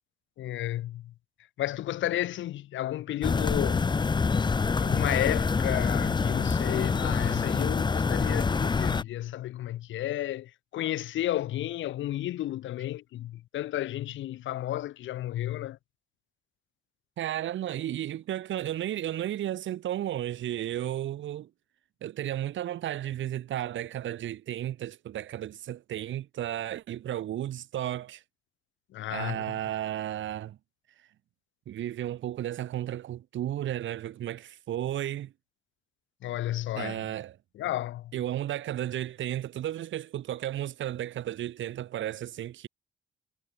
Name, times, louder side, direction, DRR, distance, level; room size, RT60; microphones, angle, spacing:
voice 1, 0.4-1.1 1.6-3.9 4.8-15.8 28.9-29.4 36.2-37.0 37.6-38.1, left 14 dB, 75° left, 0.9 m, -32 dB
sound 1, 3.2-9.0, left 4 dB, 20° left, 0.6 m, -26 dB
voice 2, 17.2-21.5 22.0-28.2 29.1-30.6 31.7-35.3 36.8-37.4 38.1-42.7, right 12 dB, 75° right, 2.4 m, -33 dB
cardioid pair, 90°, 20 cm